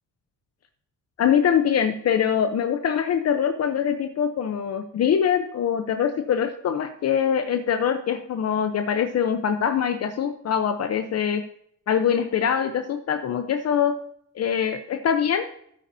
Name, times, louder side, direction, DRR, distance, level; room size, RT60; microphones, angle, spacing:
voice 1, 1.2-11.4 11.9-14.0 14.3-15.5, left 8 dB, 55° left, 7 dB, 0.8 m, -23 dB
14.0 x 8.4 x 2.7 m, 0.67 s
cardioid pair, 90°, 30 cm